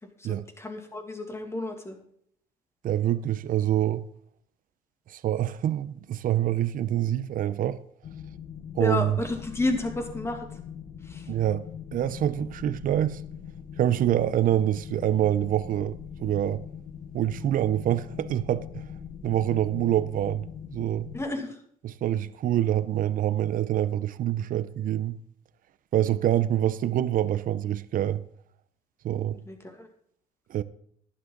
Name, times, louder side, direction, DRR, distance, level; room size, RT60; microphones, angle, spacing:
voice 1, 0.0-2.0 8.8-10.6 11.0-11.3 21.1-21.6 29.3-29.9, left 2 dB, 15° left, 2.3 m, -32 dB
voice 2, 2.8-4.0 5.1-7.8 8.8-9.1 11.3-11.7 11.9-13.2 13.8-16.6 17.1-18.8 19.2-20.5 20.7-21.1 22.0-25.2 25.9-28.2 29.0-29.4 30.5-30.6, right 12 dB, 55° right, 0.7 m, -26 dB
sound 1, 8.0-21.3, left 8 dB, 55° left, 1.2 m, -42 dB
11.5 x 11.5 x 3.9 m
cardioid pair, 110°, 17 cm